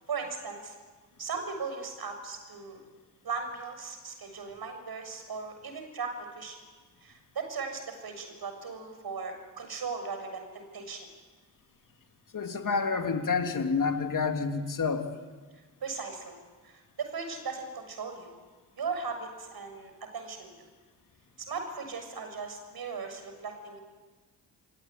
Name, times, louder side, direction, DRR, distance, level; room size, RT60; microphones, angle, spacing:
voice 1, 0.1-0.8 1.2-2.8 3.2-6.6 7.0-11.1 14.2-14.3 15.8-16.4 16.6-18.3 18.8-20.5 21.5-23.8, right 5 dB, 50° right, 6 dB, 7.2 m, -38 dB
voice 2, 12.3-15.1, left 5 dB, 40° left, 5 dB, 3.4 m, -28 dB
28.5 x 21.0 x 9.7 m, 1.4 s
figure-of-eight pair, 40°, 48 cm